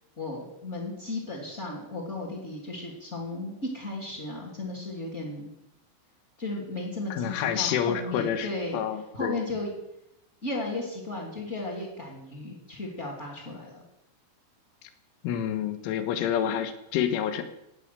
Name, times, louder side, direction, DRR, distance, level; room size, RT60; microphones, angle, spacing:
voice 1, 0.2-5.5 6.4-8.8 9.1-9.7 10.4-13.8, left 2 dB, 25° left, -1 dB, 1.7 m, -35 dB
voice 2, 7.1-9.4 15.2-17.4, left 9 dB, 80° left, 9 dB, 3.7 m, -28 dB
18.0 x 8.8 x 6.7 m, 0.86 s
omnidirectional pair, 5.7 m